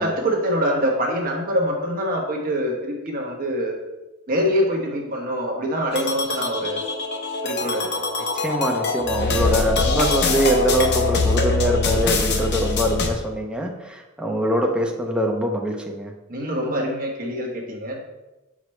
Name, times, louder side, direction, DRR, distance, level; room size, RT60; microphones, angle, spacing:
voice 1, 0.0-3.8 4.3-6.8 7.4-8.0 16.3-18.0, equal, 40° right, 0 dB, 1.1 m, -24 dB
sound 1, 5.9-13.1, left 3 dB, 55° left, 0.8 m, -23 dB
voice 2, 8.3-16.1, right 1 dB, 5° right, 0 dB, 0.7 m, -23 dB
7.3 x 5.0 x 3.2 m, 1.0 s
head